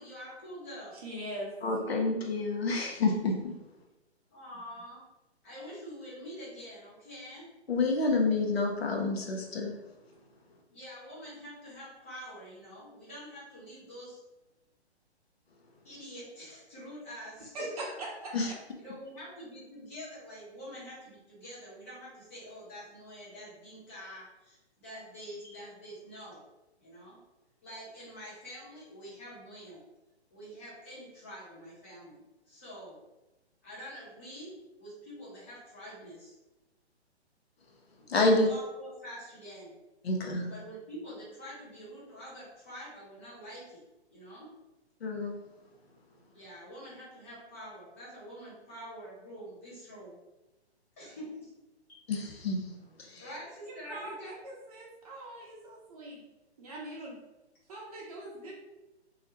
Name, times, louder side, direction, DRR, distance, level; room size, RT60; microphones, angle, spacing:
voice 1, 0.0-1.0 4.3-5.0 5.4-7.5 10.7-14.2 15.8-17.8 18.8-26.4 26.8-27.2 27.6-29.8 30.3-33.0 33.6-36.3 38.0-39.7 40.4-43.8 44.1-44.5 46.3-50.2 51.0-51.5 51.9-52.1 53.1-54.4, equal, 15° left, -8 dB, 0.4 m, -46 dB
voice 2, 0.9-1.5 17.5-18.4 53.7-56.2 56.6-57.2 57.7-58.5, right 1 dB, 35° right, -2 dB, 0.7 m, -42 dB
voice 3, 1.6-3.6 7.7-9.8 18.3-18.5 38.1-38.5 40.0-40.5 45.0-45.4 52.1-52.6 53.0-53.3, left 3 dB, 65° left, 1 dB, 0.6 m, -28 dB
2.3 x 2.1 x 2.9 m, 1.0 s
figure-of-eight pair, 125°, 33 cm